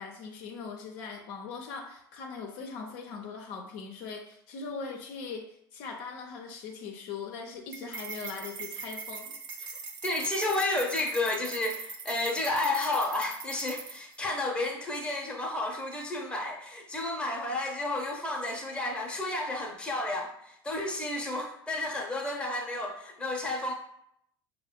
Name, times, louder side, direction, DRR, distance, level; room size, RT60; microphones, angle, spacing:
voice 1, 0.0-5.5 5.7-9.3, left 5 dB, 55° left, 2 dB, 0.5 m, -40 dB
sound 1, 7.7-14.2, right 5 dB, 40° right, 0.6 m, -41 dB
voice 2, 10.0-23.7, left 2 dB, 10° left, 0 dB, 0.8 m, -31 dB
5.5 x 2.1 x 2.2 m, 0.72 s
figure-of-eight pair, 80°, 13 cm